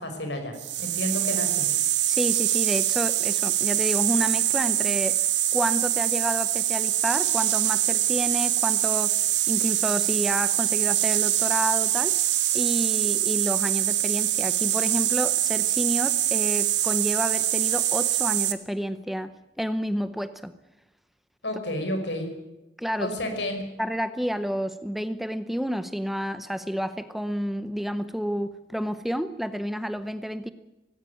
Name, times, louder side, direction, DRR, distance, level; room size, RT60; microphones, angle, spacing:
voice 1, 0.0-1.7 21.4-22.3 23.0-23.6, left 1 dB, 75° left, 5 dB, 5.5 m, -31 dB
sound 1, 0.6-18.5, right 13 dB, 80° right, 1.7 m, -24 dB
voice 2, 2.1-5.2 5.5-9.2 9.5-12.1 12.5-19.3 19.6-20.5 22.8-23.1 23.8-30.5, equal, ahead, 12 dB, 0.7 m, -30 dB
18.0 x 17.0 x 9.5 m, 1.0 s
head